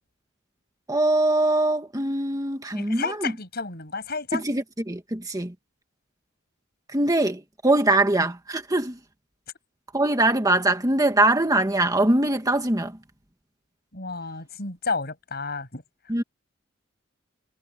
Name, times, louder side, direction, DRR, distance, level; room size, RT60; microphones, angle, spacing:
voice 1, 0.9-3.3 4.3-5.5 6.9-9.0 9.9-13.0 16.1-16.2, right 2 dB, 20° right, 1.7 m, -22 dB
voice 2, 2.7-4.4 13.9-15.8, left 4 dB, 50° left, 7.5 m, -31 dB
head